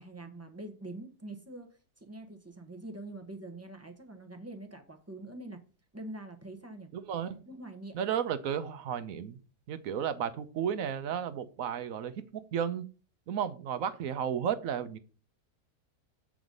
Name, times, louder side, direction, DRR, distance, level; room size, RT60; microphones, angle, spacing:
voice 1, 0.0-5.6 5.9-6.9 7.5-8.0, right 2 dB, 10° right, 0.9 m, -45 dB
voice 2, 6.9-7.4 7.9-9.4 9.7-12.9 13.3-15.0, right 8 dB, 65° right, 1.1 m, -33 dB
7.8 x 4.9 x 5.2 m
omnidirectional pair, 1.6 m